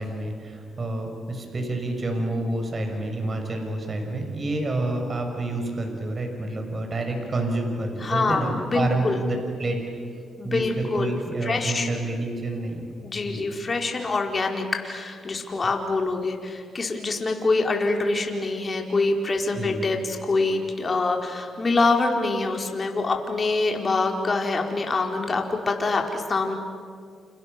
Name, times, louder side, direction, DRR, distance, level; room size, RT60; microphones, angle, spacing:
voice 1, 0.0-9.8 10.4-13.4 19.5-19.8, right 2 dB, 40° right, 4 dB, 6.4 m, -28 dB
voice 2, 8.0-9.2 10.4-11.9 13.0-26.6, left 3 dB, 40° left, 2 dB, 4.5 m, -25 dB
29.0 x 29.0 x 6.9 m, 2.2 s
supercardioid pair, 60°, 0 cm